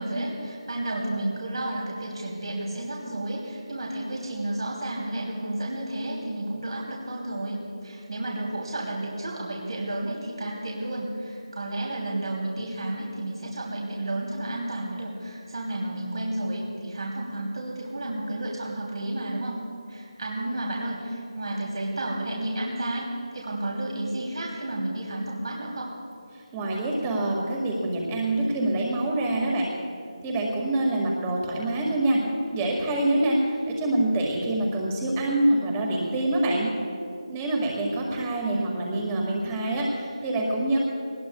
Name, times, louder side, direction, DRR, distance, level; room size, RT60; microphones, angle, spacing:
voice 1, 0.0-19.6 19.9-23.1 23.3-25.9, right 1 dB, 60° right, -3 dB, 3.0 m, -31 dB
voice 2, 26.5-29.7 30.2-32.2 32.5-36.7 37.3-40.8, right 1 dB, 15° right, -1 dB, 1.9 m, -25 dB
22.5 x 19.5 x 2.3 m, 2.4 s
figure-of-eight pair, 170°, 3 cm